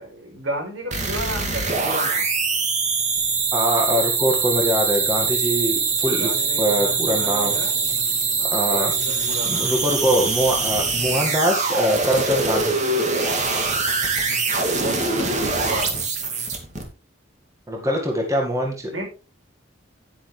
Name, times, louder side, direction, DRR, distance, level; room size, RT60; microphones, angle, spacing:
voice 1, 0.0-2.3 6.2-7.8 8.4-9.8 14.2-14.3 14.8-15.9 18.9-19.0, right 1 dB, 70° right, 1 dB, 5.4 m, -33 dB
sound 1, 0.9-16.8, right 4 dB, 35° right, 2.3 m, -23 dB
voice 2, 3.5-6.3 6.6-7.5 8.5-8.9 9.5-12.8 17.7-19.0, equal, 15° right, 1 dB, 1.9 m, -23 dB
10.0 x 10.0 x 3.4 m, 0.32 s
head